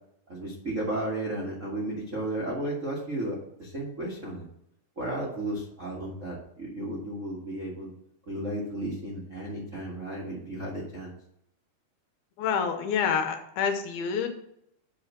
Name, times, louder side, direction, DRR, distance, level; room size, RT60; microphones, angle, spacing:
voice 1, 0.3-4.4 4.9-7.9 8.3-11.1, right 1 dB, 70° right, -5 dB, 0.7 m, -34 dB
voice 2, 12.4-14.3, left 7 dB, 75° left, 5 dB, 2.7 m, -27 dB
7.7 x 5.0 x 6.1 m, 0.75 s
omnidirectional pair, 4.5 m